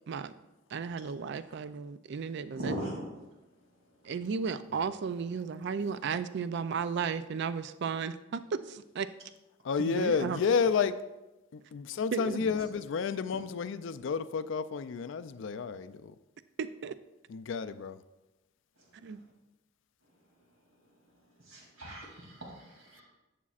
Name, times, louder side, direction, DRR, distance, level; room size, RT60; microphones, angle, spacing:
voice 1, 0.7-2.7 4.0-9.1 9.8-10.4 12.1-12.4 16.6-17.0 19.0-19.2, right 6 dB, 55° right, 13 dB, 0.4 m, -34 dB
voice 2, 2.6-3.0 21.4-23.0, right 1 dB, 80° right, -2 dB, 2.7 m, -39 dB
voice 3, 9.6-11.0 11.5-16.2 17.3-18.0, left 5 dB, 65° left, 13 dB, 0.4 m, -31 dB
11.0 x 7.4 x 2.4 m, 1.0 s
head